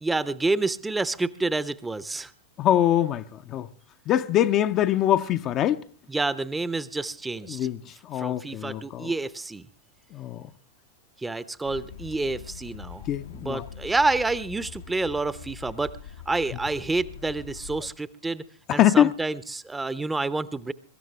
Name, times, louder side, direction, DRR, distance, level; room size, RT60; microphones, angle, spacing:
voice 1, 0.0-2.3 6.1-7.7 8.1-9.7 11.2-13.1 13.3-16.0 16.3-18.4 18.7-20.7, right 3 dB, 10° right, 0.7 m, -28 dB
voice 2, 2.6-3.7 4.1-5.8 7.5-9.1 10.1-10.5 13.1-13.6 18.7-19.1, left 11 dB, 35° left, 0.6 m, -23 dB
sound 1, 11.6-17.9, left 8 dB, 60° left, 0.9 m, -43 dB
23.5 x 13.5 x 3.4 m
figure-of-eight pair, 90°, 0 cm